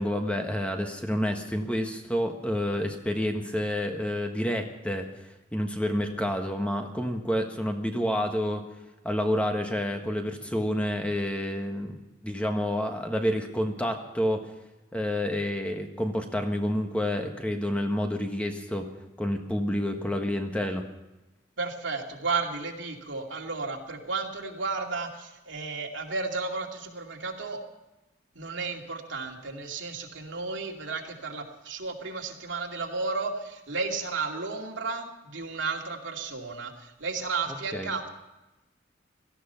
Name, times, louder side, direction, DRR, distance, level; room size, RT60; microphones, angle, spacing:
voice 1, 0.0-8.7 9.0-12.0 12.2-14.5 14.9-18.9 19.2-20.8 37.7-37.9, equal, 5° left, 4 dB, 1.4 m, -29 dB
voice 2, 21.6-27.6 28.3-38.1, right 4 dB, 85° right, 1 dB, 2.5 m, -33 dB
17.5 x 14.0 x 5.7 m, 1.0 s
head